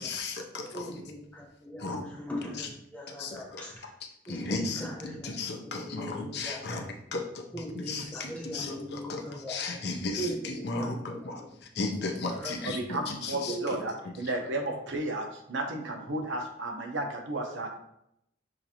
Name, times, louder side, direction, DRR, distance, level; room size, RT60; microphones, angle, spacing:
voice 1, 0.0-0.7 1.8-2.0 3.2-3.3 4.3-4.9 5.2-6.8 7.1-7.4 7.9-8.7 9.5-10.2 10.6-11.4 11.7-12.8 13.1-13.5, left 3 dB, 60° left, 3 dB, 0.6 m, -34 dB
voice 2, 0.7-3.9 4.3-6.9 7.5-9.6 10.2-11.6 11.9-12.7 13.5-13.7, equal, 10° left, -2 dB, 0.9 m, -40 dB
voice 3, 12.7-17.7, right 2 dB, 85° right, 2 dB, 0.8 m, -33 dB
6.3 x 2.6 x 2.9 m, 0.77 s
head